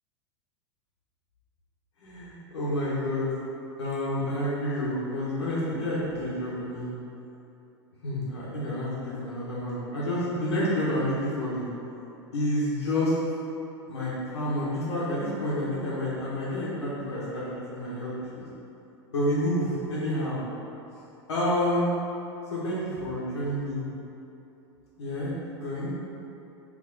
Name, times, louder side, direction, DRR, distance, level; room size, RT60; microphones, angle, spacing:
voice 1, 2.0-3.3 3.8-6.9 8.0-11.7 12.3-13.1 13.9-17.4 17.7-18.5 19.1-20.4 21.3-21.9 22.5-23.8 25.0-25.9, left 1 dB, 70° left, -8 dB, 1.0 m, -29 dB
3.7 x 2.7 x 3.9 m, 2.9 s
figure-of-eight pair, 90°, 15 cm